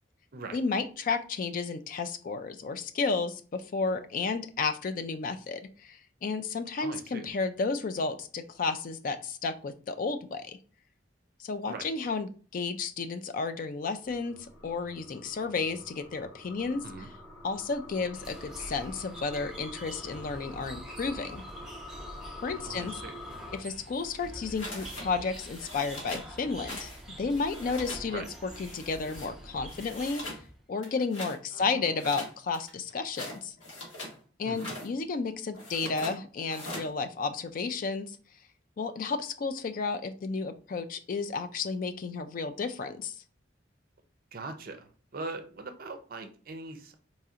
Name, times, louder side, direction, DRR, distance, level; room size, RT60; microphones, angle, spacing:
voice 1, 0.5-10.6 11.4-14.4 14.6-16.8 17.4-21.4 22.4-22.9 23.6-30.2 30.7-33.5 34.4-38.2 38.8-43.2, left 4 dB, 45° left, 9 dB, 0.3 m, -32 dB
voice 2, 6.8-7.3 11.7-11.9 16.8-17.1 22.6-23.2 28.1-28.2 31.5-31.9 34.4-34.7 44.3-46.9, right 3 dB, 50° right, 7 dB, 0.5 m, -41 dB
sound 1, 14.0-23.6, left 2 dB, 15° left, 1.2 m, -46 dB
sound 2, 18.1-30.6, right 1 dB, 5° right, 0.8 m, -46 dB
sound 3, 24.6-25.1 25.3-26.3 26.7-27.0 27.3-28.1 28.5-29.3 29.7-30.4 30.8-31.4 32.0-34.2 34.5-34.9 35.5-36.2 36.5-36.9, left 1 dB, 90° left, 1.4 m, -41 dB
4.1 x 2.7 x 2.4 m, 0.40 s
head